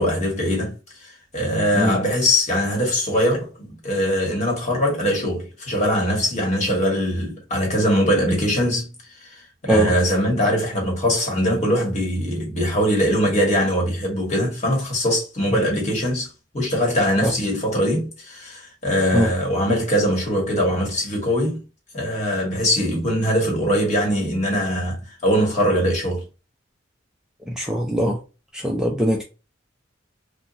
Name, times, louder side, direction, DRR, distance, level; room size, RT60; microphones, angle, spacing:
voice 1, 0.0-3.5 3.8-8.9 9.2-16.3 16.5-21.6 21.9-26.2, equal, 35° left, 1.2 m, -22 dB
voice 2, 27.5-28.2 28.5-29.2, equal, 5° right, 0.4 m, -21 dB
2.9 x 2.3 x 2.5 m
head